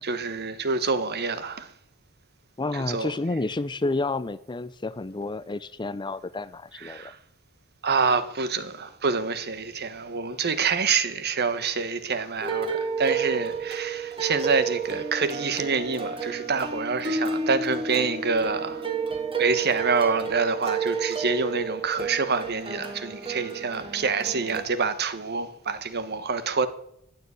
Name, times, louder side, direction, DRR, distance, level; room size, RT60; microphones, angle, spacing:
voice 1, 0.0-1.7 2.7-3.1 6.8-7.2 7.8-18.9 19.4-26.7, right 4 dB, 50° right, 1.3 m, -27 dB
voice 2, 2.6-7.1, left 2 dB, 20° left, 0.5 m, -30 dB
sound 1, 12.4-24.6, right 5 dB, 25° right, 2.1 m, -31 dB
15.0 x 9.9 x 8.3 m
head